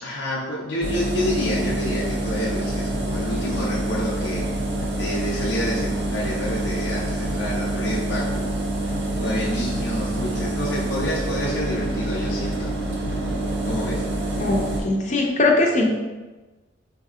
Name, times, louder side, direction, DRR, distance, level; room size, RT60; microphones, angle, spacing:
voice 1, 0.0-4.5 4.9-8.6 9.2-12.7 13.5-14.1, left 1 dB, 85° left, -5 dB, 0.6 m, -28 dB
Engine, 0.8-14.8, right 1 dB, 65° right, 0.6 m, -26 dB
voice 2, 14.4-16.0, left 2 dB, 40° left, 1 dB, 0.5 m, -20 dB
4.0 x 2.7 x 2.4 m, 1.2 s
head